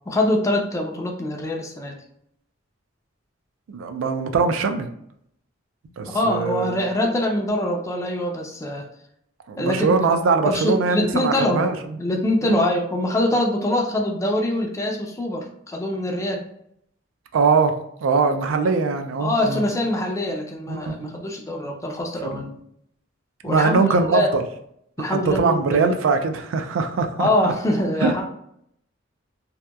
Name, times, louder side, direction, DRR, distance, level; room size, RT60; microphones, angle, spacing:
voice 1, 0.1-2.0 6.1-8.9 9.6-10.0 10.4-11.7 12.0-16.5 18.6-18.7 19.2-22.5 23.4-24.3 25.0-25.9 27.2-28.3, left 1 dB, 15° left, 1 dB, 0.4 m, -24 dB
voice 2, 3.7-4.9 6.0-6.7 9.5-11.7 12.5-12.6 17.3-17.7 18.0-19.6 20.7-21.2 22.2-22.4 23.4-24.4 25.1-27.5 28.0-28.3, right 4 dB, 85° right, 7 dB, 0.3 m, -21 dB
2.8 x 2.2 x 2.2 m, 0.71 s
head